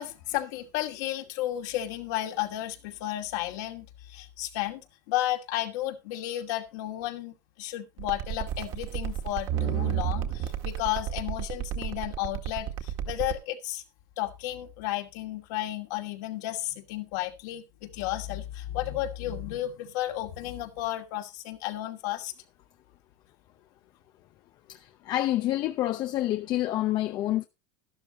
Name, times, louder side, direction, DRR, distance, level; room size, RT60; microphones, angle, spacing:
voice 1, 0.0-13.8 14.2-22.3, left 14 dB, 70° left, 2.5 m, -33 dB
sound 1, 8.0-13.4, right 10 dB, 55° right, 2.0 m, -31 dB
voice 2, 24.7-27.5, left 14 dB, 45° left, 0.7 m, -28 dB
12.0 x 12.0 x 3.0 m
supercardioid pair, 115°, 10 cm